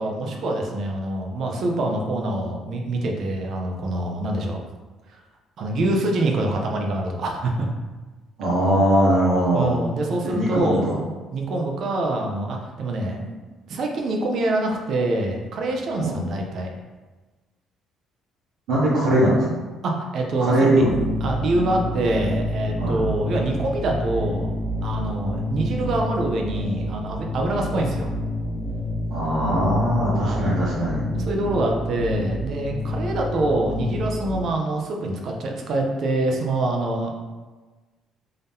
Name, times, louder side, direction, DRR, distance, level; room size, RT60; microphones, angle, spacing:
voice 1, 0.0-4.6 5.6-7.7 9.5-10.9 11.3-13.4 13.7-16.7 19.8-20.8 21.2-24.5 24.8-28.1 30.1-30.5 31.1-37.1, right 2 dB, 50° right, 1 dB, 0.6 m, -25 dB
voice 2, 8.4-9.8 10.2-11.0 15.9-16.2 18.7-19.4 20.4-21.0 22.8-23.0 29.1-31.0, right 1 dB, 75° right, -10 dB, 1.2 m, -20 dB
sound 1, 20.8-34.4, left 1 dB, 40° left, 0.6 m, -28 dB
3.8 x 2.7 x 3.5 m, 1.3 s
cardioid pair, 155°, 0 cm